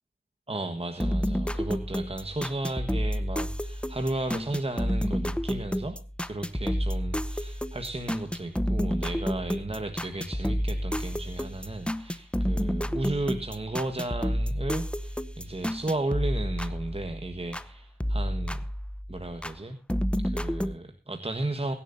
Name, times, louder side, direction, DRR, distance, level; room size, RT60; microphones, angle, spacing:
voice 1, 0.5-18.7 19.1-19.8 20.2-21.7, right 2 dB, 30° right, 5 dB, 1.5 m, -34 dB
sound 1, 1.0-17.7 18.0-19.6 19.9-20.7, equal, 5° left, 0.9 m, -30 dB
23.0 x 10.5 x 2.7 m, 0.35 s
wide cardioid pair, 65°, 19 cm